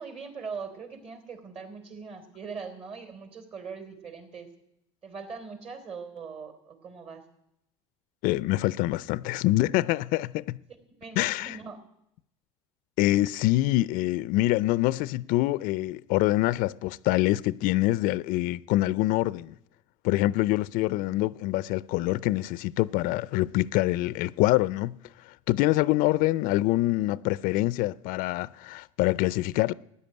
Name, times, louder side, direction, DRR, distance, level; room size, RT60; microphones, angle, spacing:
voice 1, 0.0-4.5 5.0-7.2 10.9-11.8, right 5 dB, 40° right, 3.6 m, -41 dB
voice 2, 8.2-10.6 11.2-11.6 13.0-19.5 20.0-25.0 25.3-29.7, left 17 dB, 65° left, 0.5 m, -25 dB
14.0 x 9.9 x 8.9 m
supercardioid pair, 100°, 16 cm